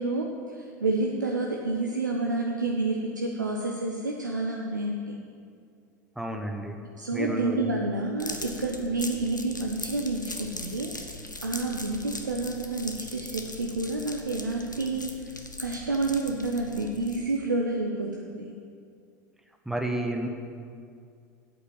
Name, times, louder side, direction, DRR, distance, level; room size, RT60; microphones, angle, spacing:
voice 1, 0.0-5.2 7.0-18.5, right 2 dB, 80° right, 0 dB, 0.9 m, -29 dB
voice 2, 6.2-6.8 7.1-7.6 19.6-20.3, right 1 dB, 5° right, 3 dB, 1.2 m, -31 dB
sound 1, 8.2-17.4, left 2 dB, 90° left, 0.9 m, -40 dB
8.9 x 8.2 x 7.5 m, 2.3 s
figure-of-eight pair, 80°, 10 cm